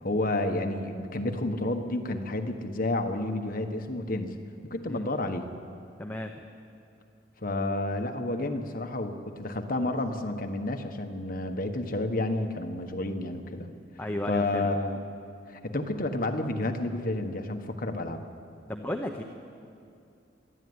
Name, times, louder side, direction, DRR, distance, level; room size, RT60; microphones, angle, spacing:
voice 1, 0.0-4.3 4.7-5.5 7.4-13.7 14.3-15.0 15.5-18.2, left 2 dB, 45° left, 5 dB, 1.4 m, -30 dB
voice 2, 6.0-6.3 14.0-14.7 18.7-19.2, left 1 dB, 10° left, 3 dB, 0.9 m, -33 dB
24.0 x 13.5 x 9.6 m, 2.5 s
head